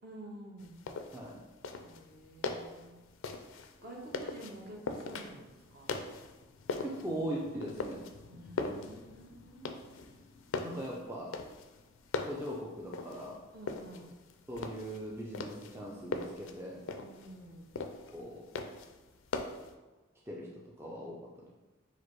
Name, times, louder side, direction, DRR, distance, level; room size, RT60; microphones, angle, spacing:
voice 1, 0.0-0.8 1.8-2.9 3.8-5.9 8.3-9.7 13.5-14.1 17.0-17.7, right 1 dB, 50° right, -1 dB, 0.9 m, -49 dB
sound 1, 0.6-19.7, left 3 dB, 75° left, 0.4 m, -41 dB
voice 2, 1.1-1.4 6.8-8.0 10.6-11.4 12.2-13.4 14.5-16.9 18.1-18.5 20.3-21.5, right 1 dB, 10° right, -3 dB, 0.4 m, -40 dB
4.9 x 2.0 x 4.4 m, 1.2 s
head